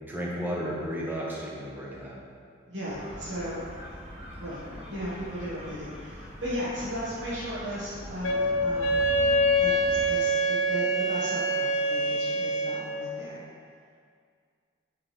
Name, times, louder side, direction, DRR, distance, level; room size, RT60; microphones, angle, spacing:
voice 1, 0.1-2.2, equal, 10° right, -5 dB, 0.9 m, -33 dB
voice 2, 2.7-3.6 4.4-9.0 9.6-13.4, equal, 60° right, -10 dB, 1.2 m, -36 dB
sound 1, 2.8-10.1, left 1 dB, 30° right, 1.1 m, -43 dB
Wind instrument woodwind instrument, 8.2-12.9, equal, 85° left, 0.6 m, -25 dB
8.8 x 3.7 x 3.2 m, 2.1 s
head